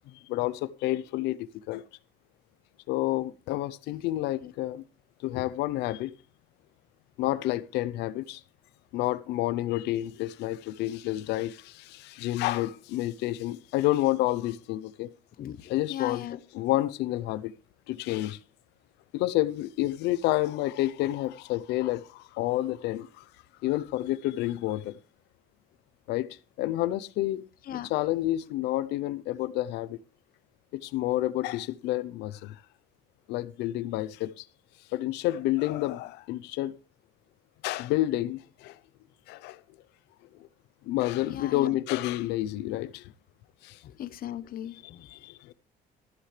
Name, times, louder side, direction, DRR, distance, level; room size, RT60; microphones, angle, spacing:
voice 1, 0.3-1.8 2.9-4.8 5.2-6.1 7.2-8.4 8.9-15.1 15.7-16.3 16.5-17.5 17.9-18.4 19.1-23.2 23.6-25.0 26.1-30.0 30.7-32.6 33.3-34.4 34.9-36.8 37.6-38.8 39.3-39.6 40.9-43.1 43.6-43.8 45.1-45.5, left 15 dB, 90° left, 0.7 m, -29 dB
voice 2, 15.9-16.4 27.7-27.9 41.3-41.8 43.8-45.1, left 11 dB, 60° left, 1.0 m, -37 dB
13.5 x 12.5 x 3.3 m
cardioid pair, 110°, 17 cm